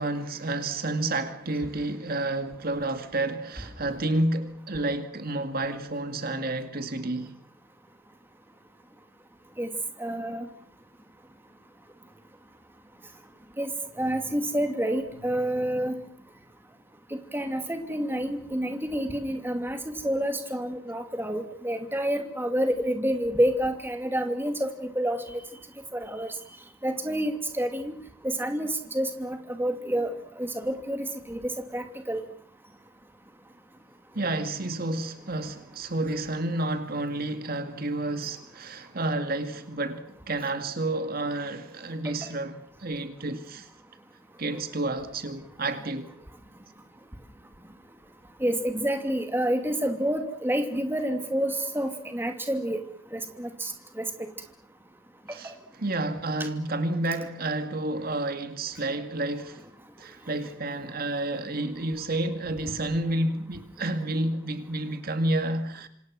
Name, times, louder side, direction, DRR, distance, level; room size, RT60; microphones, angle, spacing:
voice 1, 0.0-7.3 34.1-43.7 44.4-46.1 55.3-55.5 55.8-59.6 60.0-65.9, right 2 dB, 50° right, 2.1 m, -30 dB
voice 2, 10.0-10.5 13.6-13.7 14.0-15.9 17.3-19.8 20.0-25.4 25.9-26.3 26.8-27.9 28.2-32.2 48.4-52.8 53.1-53.7 54.0-54.1, right 1 dB, 10° right, 2.7 m, -28 dB
27.0 x 26.5 x 6.2 m
head